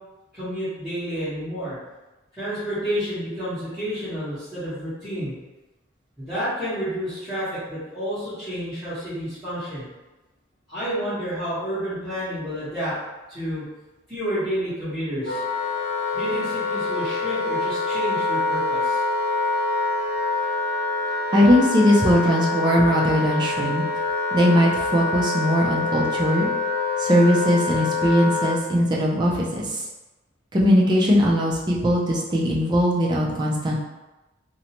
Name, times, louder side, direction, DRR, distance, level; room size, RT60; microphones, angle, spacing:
voice 1, 0.3-1.8 2.4-5.3 6.2-9.9 10.7-12.9 13.3-13.7 14.1-15.4 16.1-19.0, equal, 5° right, -19 dB, 1.1 m, -30 dB
Wind instrument woodwind instrument, 15.2-28.6, left 3 dB, 50° left, 0.6 m, -25 dB
voice 2, 21.3-23.8 24.3-26.5 27.0-29.8 30.5-33.8, equal, 25° right, -3 dB, 0.4 m, -20 dB
2.6 x 2.1 x 2.8 m, 1.1 s
head